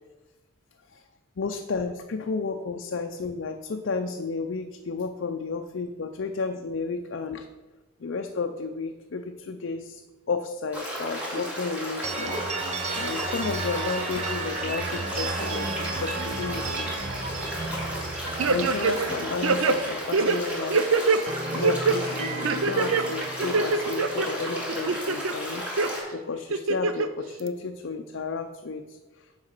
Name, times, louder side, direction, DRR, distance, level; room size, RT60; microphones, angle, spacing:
voice 1, 1.4-7.5 8.0-12.4 13.0-16.9 18.4-20.9 21.5-25.7 26.1-29.3, left 4 dB, 65° left, 5 dB, 0.5 m, -32 dB
sound 1, 10.7-26.0, equal, 5° right, 2.1 m, -34 dB
sound 2, 12.0-20.8 21.0-25.2, right 3 dB, 35° right, 0.7 m, -35 dB
sound 3, 18.4-19.1 19.4-21.2 21.6-22.0 22.4-23.0 23.4-24.3 24.7-25.3 25.8-25.9 26.5-27.1 27.5-27.6, right 4 dB, 90° right, 0.6 m, -23 dB
9.6 x 4.0 x 6.5 m, 1.2 s
head